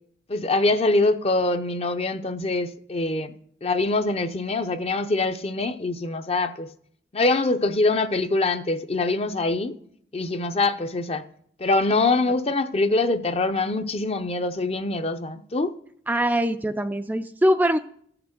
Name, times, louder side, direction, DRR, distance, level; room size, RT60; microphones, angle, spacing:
voice 1, 0.3-3.3 3.6-6.7 7.1-9.7 10.1-11.2 11.6-15.7, left 2 dB, 35° left, 0.6 m, -24 dB
voice 2, 16.1-17.8, equal, 10° right, 0.4 m, -22 dB
15.0 x 5.9 x 6.5 m
head